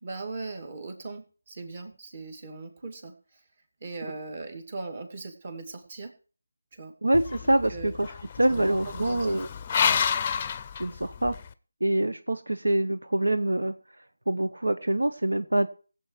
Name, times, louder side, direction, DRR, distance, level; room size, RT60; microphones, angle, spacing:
voice 1, 0.0-3.1 3.8-6.1 6.7-6.9 7.4-7.9 8.5-9.4 9.9-10.1, right 3 dB, 35° right, 2.4 m, -39 dB
voice 2, 7.0-8.1 8.4-9.5 10.8-11.4 11.8-13.7 14.3-15.7, right 1 dB, 85° right, 0.9 m, -25 dB
sound 1, 7.1-11.5, left 7 dB, 25° left, 0.6 m, -30 dB
18.5 x 7.8 x 4.7 m
figure-of-eight pair, 165°, 0 cm